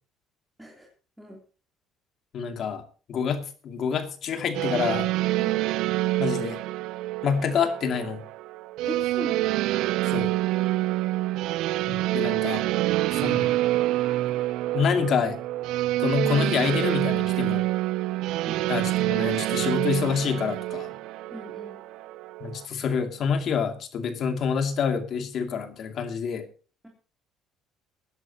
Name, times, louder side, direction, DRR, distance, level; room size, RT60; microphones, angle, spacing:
voice 1, 2.3-2.8 3.1-5.1 6.2-6.6 7.2-8.2 10.1-10.3 11.9-12.6 13.2-13.5 14.7-15.4 16.0-17.7 18.7-20.9 22.4-26.5, left 6 dB, 50° left, 7 dB, 2.5 m, -27 dB
sound 1, 4.5-22.6, right 16 dB, 75° right, 0.6 m, -27 dB
voice 2, 8.8-9.6 18.4-18.7 21.3-21.8, equal, 5° right, -1 dB, 3.2 m, -39 dB
21.0 x 11.0 x 2.9 m, 0.36 s
cardioid pair, 125°, 0 cm